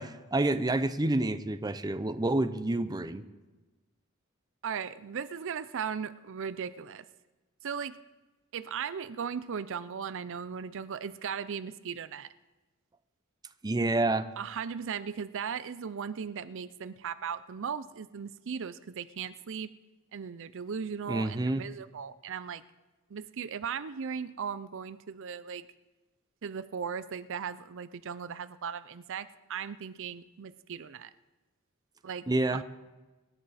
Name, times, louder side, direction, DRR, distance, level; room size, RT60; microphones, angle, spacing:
voice 1, 0.0-3.2 13.6-14.3 21.1-21.6 32.3-32.6, right 2 dB, 20° right, 10 dB, 0.6 m, -28 dB
voice 2, 4.6-7.0 7.6-8.0 8.5-12.3 14.4-19.7 20.1-22.6 23.1-25.7 26.4-31.1 32.0-32.3 32.5-32.6, right 7 dB, 65° right, 14 dB, 0.5 m, -37 dB
24.5 x 11.0 x 4.2 m, 1.2 s
head